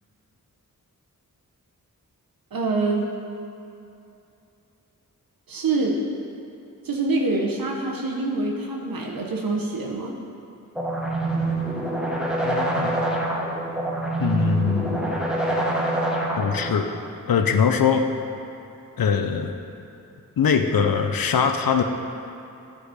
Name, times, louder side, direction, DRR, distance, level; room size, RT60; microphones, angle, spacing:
voice 1, 2.5-3.1 5.5-6.0 6.8-10.1, right 3 dB, 80° right, 1 dB, 0.9 m, -25 dB
sound 1, 10.7-16.7, right 1 dB, ahead, 1.2 m, -25 dB
voice 2, 12.4-13.0 14.2-15.1 16.4-16.9 17.3-18.1 19.0-19.6 20.4-21.8, left 6 dB, 80° left, 6 dB, 0.7 m, -22 dB
10.0 x 5.0 x 5.1 m, 2.8 s
wide cardioid pair, 70°, 35 cm